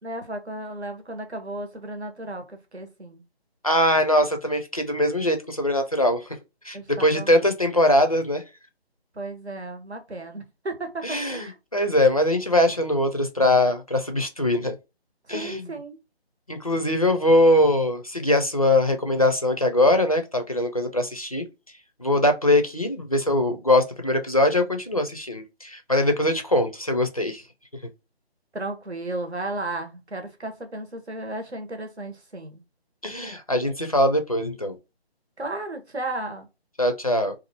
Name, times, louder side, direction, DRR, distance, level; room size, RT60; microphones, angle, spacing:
voice 1, 0.0-3.2 6.7-7.4 9.1-11.6 15.3-16.0 28.5-32.6 35.4-36.4, right 2 dB, 90° right, 1.0 m, -34 dB
voice 2, 3.6-6.2 6.7-8.4 11.0-14.7 15.3-15.7 16.5-21.5 22.0-27.4 33.0-34.7 36.8-37.3, left 1 dB, 35° left, 0.4 m, -22 dB
2.7 x 2.4 x 2.7 m
figure-of-eight pair, 150°, 32 cm